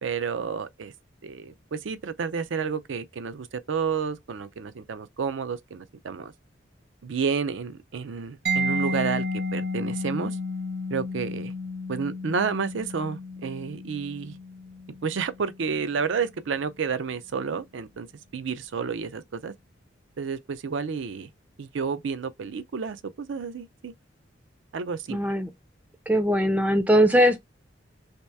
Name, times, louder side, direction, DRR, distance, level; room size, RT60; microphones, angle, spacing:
voice 1, 0.0-0.9 1.2-6.3 7.0-9.3 9.5-10.4 10.9-11.5 11.9-14.4 15.0-18.1 18.3-19.5 20.2-21.3 21.6-23.9 24.7-25.2, right 5 dB, 80° right, 0.5 m, -30 dB
Mallet percussion, 8.5-16.0, left 1 dB, 60° right, 0.8 m, -32 dB
voice 2, 25.1-25.5 26.1-27.4, equal, 10° right, 0.4 m, -20 dB
3.1 x 2.9 x 3.2 m
head